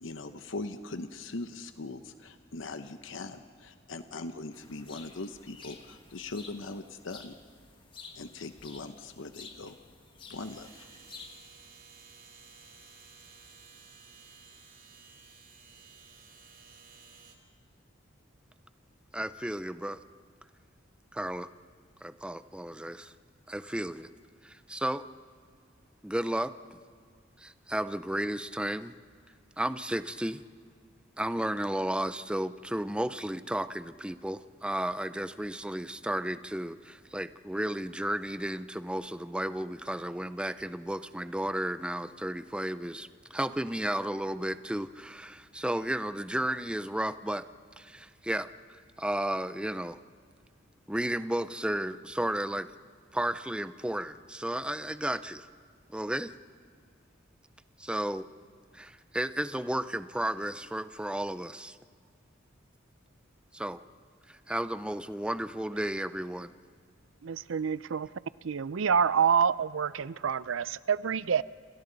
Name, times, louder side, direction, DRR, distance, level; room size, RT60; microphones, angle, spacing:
voice 1, 0.0-7.3 8.1-9.8 10.3-10.9, left 3 dB, 75° left, 9 dB, 0.9 m, -40 dB
sound 1, 4.5-11.4, left 4 dB, 25° left, 1.6 m, -51 dB
sound 2, 10.4-17.3, right 5 dB, 45° right, 2.8 m, -54 dB
voice 2, 19.1-20.0 21.1-21.5 22.0-23.1 23.5-24.1 24.4-25.1 26.0-26.8 27.4-29.0 29.6-30.4 31.2-47.4 47.8-50.0 50.9-52.7 53.1-55.5 55.9-56.3 57.8-58.3 58.7-61.8 63.5-63.8 64.3-66.5, right 1 dB, 5° right, 13 dB, 0.6 m, -33 dB
voice 3, 67.2-68.1 68.4-71.4, right 7 dB, 90° right, 18 dB, 0.5 m, -27 dB
29.0 x 28.0 x 4.0 m, 2.1 s
head